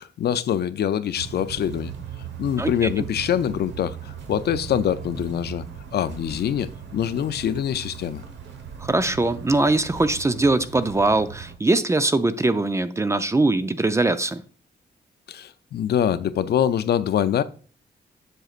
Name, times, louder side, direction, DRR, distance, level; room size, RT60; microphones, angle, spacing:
voice 1, 0.0-1.9 2.4-5.6 5.9-8.2 15.3-17.4, left 9 dB, 65° left, 0.5 m, -24 dB
sound 1, 1.1-11.5, right 8 dB, 85° right, 1.2 m, -38 dB
voice 2, 2.6-3.0 8.8-14.4, right 2 dB, 15° right, 0.4 m, -22 dB
7.7 x 6.4 x 2.4 m
cardioid pair, 120°, 18 cm